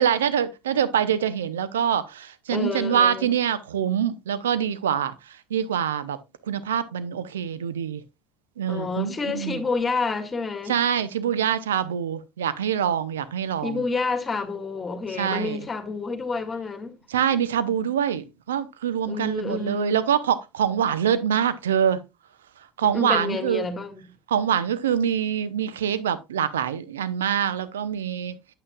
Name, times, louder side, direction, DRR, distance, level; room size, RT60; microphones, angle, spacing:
voice 1, 0.0-5.1 5.5-6.2 6.5-8.0 8.6-9.6 10.7-13.8 15.2-15.6 17.1-22.0 22.8-23.7 24.3-28.3, right 9 dB, 80° right, 0.7 m, -25 dB
voice 2, 2.5-3.3 8.7-10.8 13.6-17.0 19.1-20.0 22.9-24.1, left 4 dB, 25° left, 1.7 m, -29 dB
8.7 x 8.7 x 2.4 m
hypercardioid pair, 65°, 0 cm